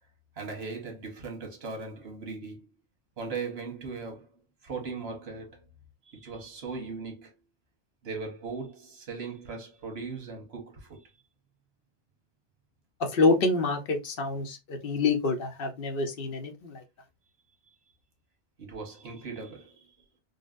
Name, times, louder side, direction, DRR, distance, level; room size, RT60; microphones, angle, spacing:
voice 1, 0.4-2.7 3.2-4.3 4.6-5.6 6.1-7.3 8.0-11.1 18.6-19.9, right 4 dB, 85° right, 1.3 m, -38 dB
voice 2, 13.0-16.8, left 3 dB, 65° left, 0.8 m, -27 dB
3.9 x 2.0 x 2.4 m
omnidirectional pair, 1.0 m